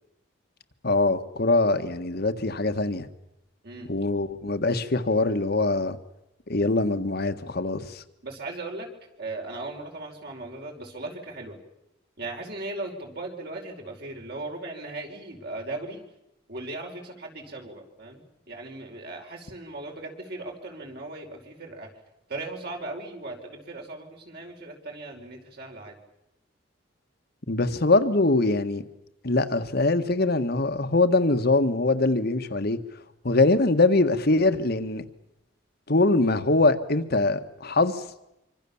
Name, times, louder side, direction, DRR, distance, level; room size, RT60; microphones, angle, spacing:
voice 1, 0.8-3.1 3.9-6.0 6.5-8.0 27.5-28.8 29.2-32.8 33.2-35.0 35.9-38.0, left 2 dB, 55° left, 9 dB, 1.6 m, -23 dB
voice 2, 8.2-8.9 9.2-11.6 12.2-16.0 16.5-21.9 22.3-26.0, right 2 dB, 55° right, 2 dB, 5.2 m, -38 dB
26.0 x 25.5 x 7.2 m, 0.87 s
head